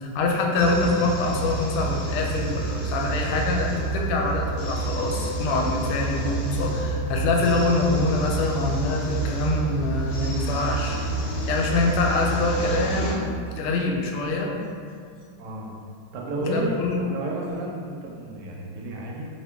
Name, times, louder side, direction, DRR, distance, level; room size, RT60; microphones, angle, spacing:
voice 1, 0.0-11.0 11.5-13.3 13.6-14.5 16.4-17.0, left 3 dB, 90° left, 0 dB, 1.5 m, -25 dB
sound 1, 0.6-13.1, right 3 dB, 70° left, 1.2 m, -28 dB
voice 2, 15.4-15.7 16.1-16.7 17.0-19.3, right 2 dB, 80° right, -2 dB, 1.5 m, -31 dB
3.1 x 2.9 x 3.3 m, 2.2 s
omnidirectional pair, 2.3 m